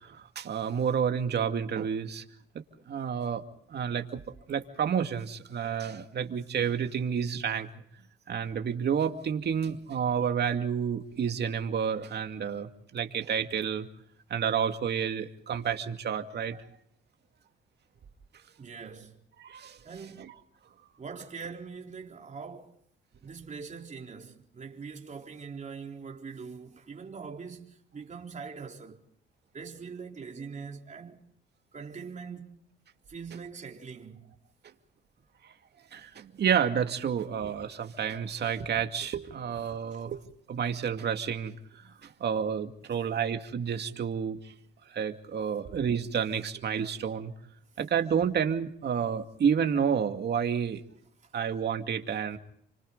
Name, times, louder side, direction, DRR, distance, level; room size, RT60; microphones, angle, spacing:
voice 1, 0.0-2.2 2.9-3.4 3.7-4.2 4.5-7.7 8.3-13.9 14.3-16.6 19.4-19.8 20.2-20.3 35.9-40.2 40.5-44.5 44.9-47.3 47.8-50.8 51.3-52.4, right 7 dB, 55° right, 2.4 m, -30 dB
voice 2, 18.6-19.2 19.8-20.3 21.0-22.8 23.2-29.0 29.5-31.3 31.7-32.6 33.1-34.3 39.9-40.0 51.2-51.3, right 5 dB, 40° right, 4.0 m, -43 dB
30.0 x 25.5 x 4.0 m
cardioid pair, 90°, 20 cm